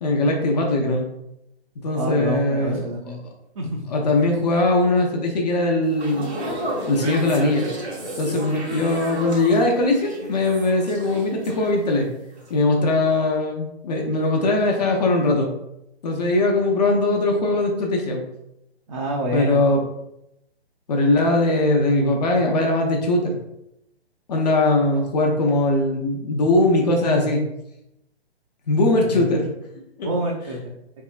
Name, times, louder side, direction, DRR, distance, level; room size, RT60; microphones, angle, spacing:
voice 1, 0.0-1.0 1.8-2.9 3.9-6.3 6.9-7.7 8.2-12.1 12.5-15.5 16.0-18.2 19.3-19.8 20.9-23.4 24.3-27.4 28.7-29.5 30.0-30.1, left 2 dB, 40° left, 1 dB, 0.6 m, -20 dB
voice 2, 1.9-3.2 3.6-3.8 18.9-19.6 29.1-29.2 30.0-30.7, right 1 dB, 30° right, -2 dB, 0.4 m, -27 dB
sound 1, 5.8-12.1 12.4-12.6, equal, 90° right, 1.0 m, -33 dB
3.6 x 3.2 x 2.4 m, 0.84 s
figure-of-eight pair, 135°, 32 cm